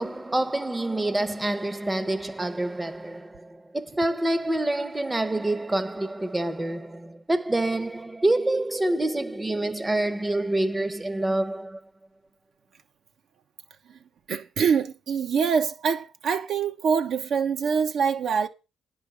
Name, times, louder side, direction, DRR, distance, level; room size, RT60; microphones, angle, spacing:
voice 1, 0.0-11.8, right 1 dB, 15° right, 1.0 m, -27 dB
voice 2, 14.3-18.5, right 6 dB, 65° right, 1.1 m, -25 dB
10.0 x 5.6 x 8.2 m
cardioid pair, 90°, 0 cm